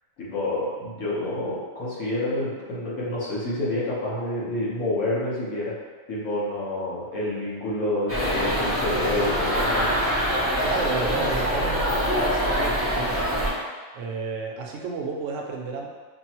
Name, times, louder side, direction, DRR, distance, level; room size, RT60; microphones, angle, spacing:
voice 1, 0.2-5.7 6.1-10.0, left 1 dB, 80° left, -7 dB, 1.5 m, -28 dB
sound 1, 8.1-13.5, equal, 15° right, 0.4 m, -24 dB
voice 2, 10.3-13.3 13.9-15.9, right 4 dB, 65° right, 0 dB, 0.9 m, -33 dB
5.9 x 2.0 x 2.9 m, 1.4 s
omnidirectional pair, 1.4 m